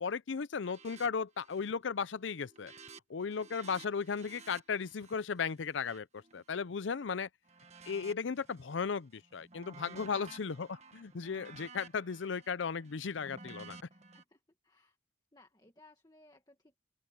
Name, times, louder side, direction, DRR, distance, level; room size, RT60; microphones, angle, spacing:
voice 1, 0.0-2.7 3.1-7.3 7.8-13.8, left 5 dB, 85° left, 0.6 m, -36 dB
sound 1, 0.6-1.1 1.4-1.8 2.1-7.0 7.5-8.8 9.2-14.2, right 4 dB, 35° right, 1.7 m, -54 dB
voice 2, 9.7-10.1 11.7-11.8 13.9-15.0 15.3-16.8, left 1 dB, 20° left, 1.9 m, -62 dB
open air
head